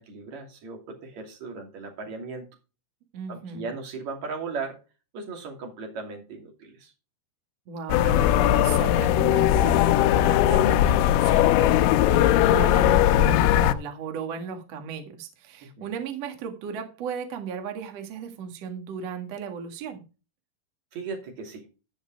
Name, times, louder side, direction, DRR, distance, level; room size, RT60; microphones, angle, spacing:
voice 1, 0.0-2.5 3.3-4.8 5.1-6.9 15.6-16.0 20.9-21.7, right 4 dB, 40° right, 3 dB, 3.2 m, -37 dB
voice 2, 3.1-3.6 7.7-20.0, right 6 dB, 75° right, 6 dB, 1.5 m, -35 dB
sound 1, 7.9-13.8, left 12 dB, 90° left, 3.3 m, -19 dB
14.0 x 5.2 x 5.1 m, 0.31 s
omnidirectional pair, 5.8 m